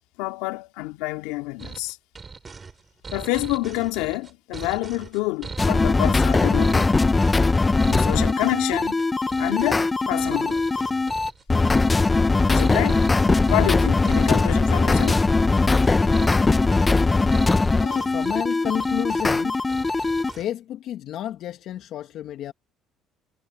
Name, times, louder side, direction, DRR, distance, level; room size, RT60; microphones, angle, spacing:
voice 1, 0.2-2.0 3.1-6.9 7.9-9.0 9.4-10.6 12.5-13.0 13.5-15.2, left 20 dB, 85° left, 2.3 m, -27 dB
sound 1, 1.6-20.5, right 4 dB, 30° right, 4.7 m, -40 dB
sound 2, 5.6-20.3, left 3 dB, 20° left, 0.6 m, -20 dB
voice 2, 17.8-19.6 20.3-22.5, left 11 dB, 65° left, 1.6 m, -31 dB
supercardioid pair, 85°, 0 cm